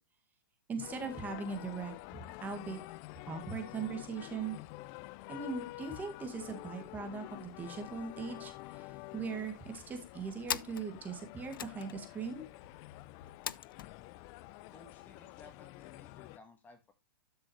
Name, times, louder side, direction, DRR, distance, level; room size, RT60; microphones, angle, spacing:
voice 1, 0.7-2.8 3.3-4.6 5.3-12.4, right 5 dB, 15° right, 5 dB, 2.0 m, -40 dB
sound 1, 0.8-16.4, left 19 dB, 35° left, 0.4 m, -49 dB
sound 2, 7.7-8.0 8.3-8.4 8.6-9.3 9.8-13.9, left 9 dB, 80° left, 0.5 m, -43 dB
voice 2, 14.7-16.9, left 4 dB, 15° left, 7 dB, 1.4 m, -58 dB
12.5 x 6.3 x 3.1 m, 0.22 s
hypercardioid pair, 140°, 11 cm